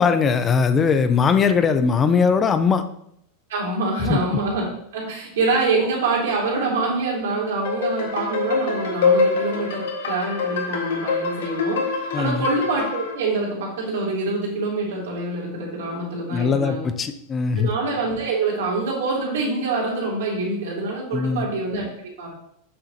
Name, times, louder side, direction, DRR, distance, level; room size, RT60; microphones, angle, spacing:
voice 1, 0.0-2.9 4.0-4.2 12.1-12.4 16.3-17.7 21.1-21.5, left 5 dB, 20° left, 10 dB, 0.4 m, -20 dB
voice 2, 3.5-16.9 17.6-21.9 22.2-22.3, right 3 dB, 85° right, -3 dB, 2.8 m, -25 dB
sound 1, 7.6-13.1, left 4 dB, 85° left, 1.5 m, -24 dB
7.6 x 5.9 x 2.8 m, 0.72 s
supercardioid pair, 160°, 0 cm